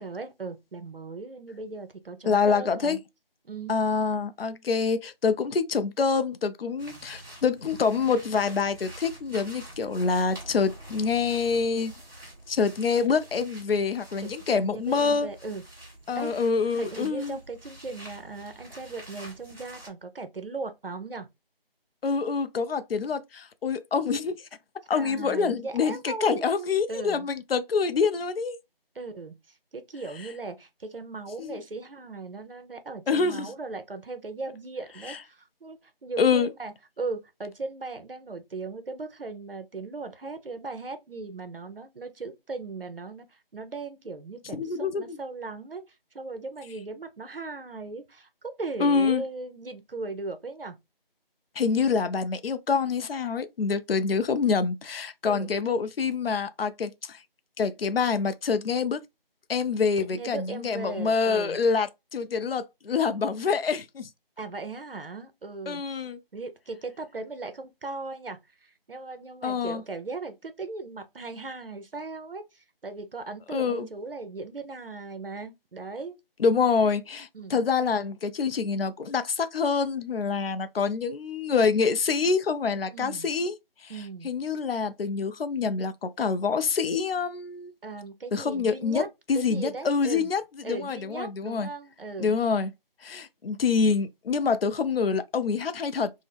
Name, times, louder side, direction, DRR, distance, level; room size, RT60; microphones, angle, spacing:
voice 1, 0.0-3.0 3.4-3.7 14.2-15.6 16.2-16.3 16.7-21.3 24.9-27.3 28.9-29.3 29.7-50.8 55.3-55.5 60.0-61.6 64.4-66.0 66.3-76.1 77.3-77.6 82.9-83.3 83.9-84.3 87.8-89.1 89.3-90.3 90.6-92.4, right 3 dB, 70° right, 0.7 m, -38 dB
voice 2, 2.2-3.0 3.7-11.9 12.5-15.3 16.1-17.4 22.0-24.4 24.9-28.6 31.4-31.6 33.1-33.5 35.1-35.2 36.2-36.5 44.5-45.2 48.8-49.2 51.6-57.2 57.6-59.0 59.5-64.1 65.7-66.2 69.4-69.8 73.5-73.9 76.4-83.5 83.8-83.9 84.2-87.7 88.3-89.0 89.3-91.7 92.2-92.7 93.0-96.1, left 5 dB, 75° left, 0.5 m, -26 dB
sound 1, 6.8-19.9, right 1 dB, 20° right, 1.2 m, -47 dB
3.6 x 2.1 x 3.3 m
figure-of-eight pair, 165°, 30 cm